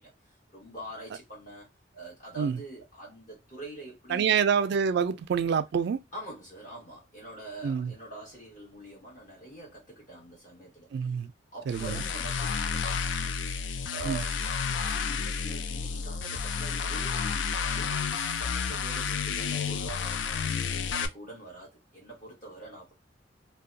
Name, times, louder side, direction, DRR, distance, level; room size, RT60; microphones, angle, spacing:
voice 1, 0.0-1.7 1.9-4.4 6.1-11.2 11.5-13.4 13.9-14.5 14.8-20.5 20.9-22.9, right 2 dB, 45° left, 1.5 m, -45 dB
voice 2, 4.1-6.0 7.6-7.9 10.9-11.3 11.7-11.9 14.0-14.2, right 7 dB, 60° right, 0.3 m, -27 dB
sound 1, 11.7-21.1, left 6 dB, 75° left, 0.3 m, -31 dB
2.7 x 2.2 x 2.5 m
head